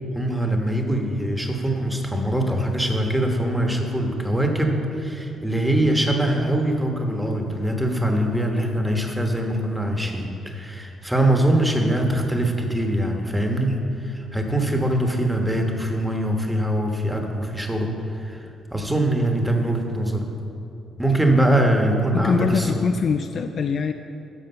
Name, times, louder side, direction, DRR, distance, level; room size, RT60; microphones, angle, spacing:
voice 1, 0.1-18.4 18.7-20.2 21.0-22.7, right 1 dB, 5° right, 2 dB, 1.3 m, -23 dB
voice 2, 22.1-23.9, left 5 dB, 55° left, 8 dB, 0.4 m, -23 dB
13.0 x 5.1 x 5.7 m, 2.8 s
cardioid pair, 90°, 0 cm